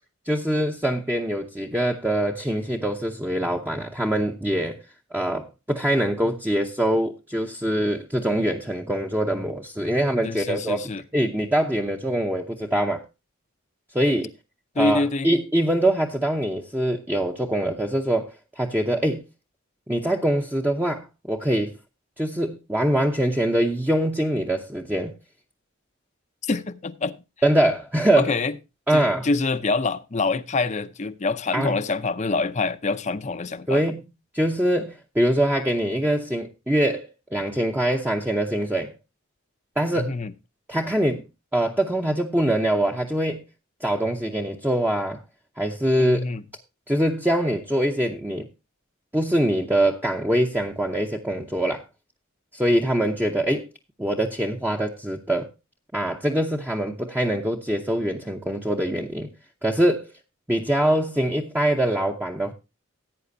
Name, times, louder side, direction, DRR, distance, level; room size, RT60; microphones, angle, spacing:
voice 1, 0.3-4.8 5.1-13.0 13.9-14.3 14.8-18.3 18.6-19.2 19.9-21.7 22.2-25.1 27.4-28.3 28.9-29.3 31.5-31.7 33.7-34.0 34.3-38.9 39.8-40.1 40.7-41.2 41.5-43.4 43.8-45.2 45.6-46.2 46.9-48.5 49.1-51.8 52.5-53.7 54.0-55.5 55.9-59.3 59.6-60.1 60.5-62.5, right 1 dB, 10° right, 0.7 m, -23 dB
voice 2, 10.2-11.0 14.8-15.3 26.4-27.1 28.2-28.6 28.9-33.8 39.9-40.3 46.0-46.4, left 3 dB, 35° left, 0.6 m, -26 dB
16.5 x 8.9 x 2.6 m
head